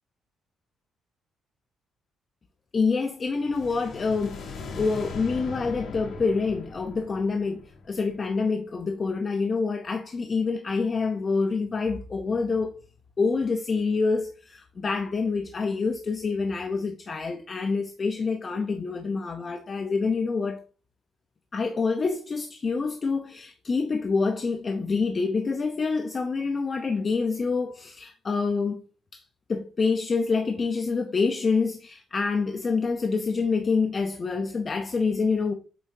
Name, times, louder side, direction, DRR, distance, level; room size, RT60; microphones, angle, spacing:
voice 1, 2.7-12.7 13.2-20.6 21.5-28.8 29.1-29.2 29.5-35.5, left 4 dB, 35° left, 0.7 m, -27 dB
sound 1, 3.3-8.4, left 4 dB, 70° left, 1.4 m, -40 dB
8.5 x 4.4 x 2.7 m
cardioid pair, 90°, 0 cm